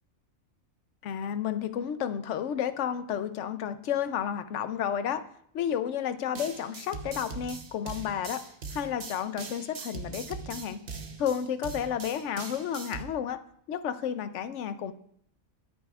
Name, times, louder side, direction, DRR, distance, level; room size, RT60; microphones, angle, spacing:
voice 1, 1.0-5.2 5.5-8.4 8.7-10.8 11.2-13.4 13.7-14.9, left 9 dB, 65° left, 11 dB, 0.9 m, -31 dB
sound 1, 6.4-13.0, right 4 dB, 45° right, 1.0 m, -41 dB
24.0 x 8.3 x 2.4 m, 0.68 s
omnidirectional pair, 1.4 m